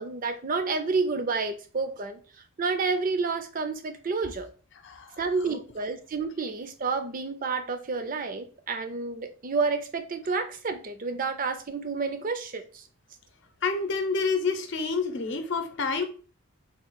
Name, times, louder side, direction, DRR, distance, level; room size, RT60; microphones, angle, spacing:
voice 1, 0.0-2.2 2.6-4.5 5.2-12.8, right 4 dB, 40° right, 0.5 m, -30 dB
voice 2, 4.8-5.2 5.4-5.6 13.6-16.0, left 4 dB, 55° left, 0.7 m, -28 dB
3.8 x 2.3 x 4.5 m
head